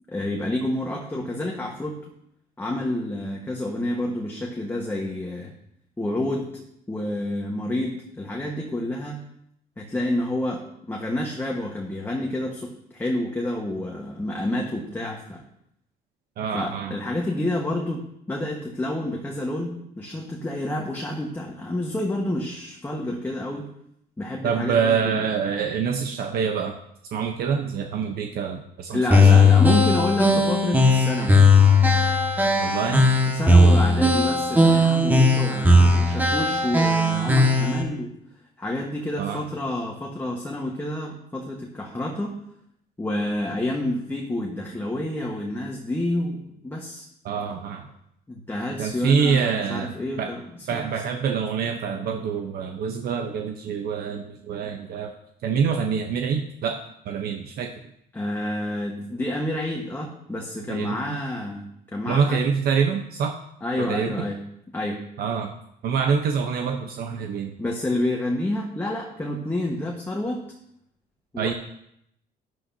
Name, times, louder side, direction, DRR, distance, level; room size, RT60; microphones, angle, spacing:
voice 1, 0.1-2.0 2.6-5.5 6.0-9.2 9.8-15.4 16.5-23.7 24.2-25.2 28.9-31.4 33.3-38.2 38.6-42.3 43.0-47.0 48.3-50.8 58.1-62.4 63.6-64.4 64.7-65.0 67.6-70.5 71.3-71.5, left 1 dB, 10° left, -1 dB, 1.4 m, -29 dB
voice 2, 16.4-17.0 24.4-26.8 27.1-29.4 32.6-33.1 39.2-39.4 47.2-47.9 48.8-50.3 50.7-55.1 55.4-56.8 57.0-57.7 60.7-61.2 62.1-63.3 63.8-64.3 65.2-65.5 65.8-67.6 71.4-71.5, right 6 dB, 65° right, 4 dB, 1.0 m, -26 dB
sound 1, 29.1-37.8, left 2 dB, 10° right, 1.7 m, -17 dB
11.5 x 11.0 x 2.8 m, 0.75 s
cardioid pair, 110°, 17 cm